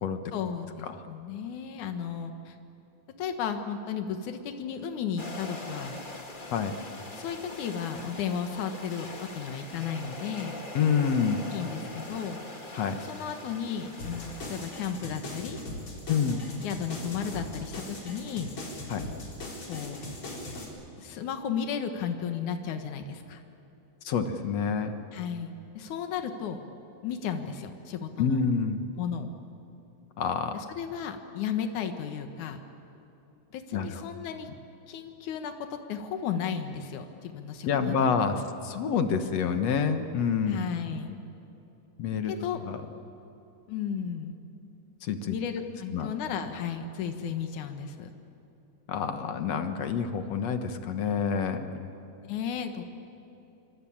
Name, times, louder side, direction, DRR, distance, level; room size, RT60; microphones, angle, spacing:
voice 1, 0.3-2.6 3.2-6.0 7.1-9.1 9.4-10.6 11.5-12.4 13.0-15.6 16.1-18.5 19.7-20.0 21.0-23.4 25.1-26.6 27.0-28.5 29.0-29.4 30.5-32.6 33.5-34.5 34.9-38.5 40.5-41.2 42.2-42.6 43.7-44.3 45.3-48.1 52.2-52.8, left 7 dB, 80° left, 6 dB, 2.8 m, -34 dB
sound 1, 5.2-14.9, left 2 dB, 20° left, 1.8 m, -42 dB
voice 2, 10.7-11.4 12.7-13.0 16.1-16.5 18.9-19.1 24.0-25.0 28.2-28.8 30.2-30.6 33.7-34.0 37.6-40.6 42.0-42.3 42.6-42.8 45.0-45.4 45.9-46.1 48.9-51.9, left 6 dB, 65° left, 7 dB, 2.3 m, -27 dB
sound 2, 14.0-20.7, left 1 dB, 45° left, 5.1 m, -40 dB
27.0 x 24.0 x 8.8 m, 2.9 s
omnidirectional pair, 3.5 m